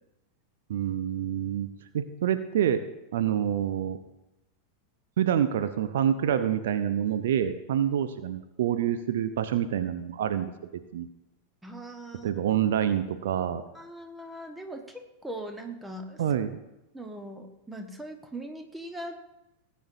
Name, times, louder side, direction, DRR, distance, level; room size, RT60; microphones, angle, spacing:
voice 1, 0.7-1.7 1.9-2.8 3.1-4.0 5.2-10.5 10.9-11.1 12.2-13.6 16.2-16.6, right 9 dB, 60° right, 10 dB, 0.6 m, -27 dB
voice 2, 11.6-12.3 13.7-16.2 16.9-19.1, right 1 dB, 5° right, 4 dB, 1.4 m, -40 dB
18.5 x 9.1 x 2.7 m, 0.96 s
figure-of-eight pair, 90°, 0 cm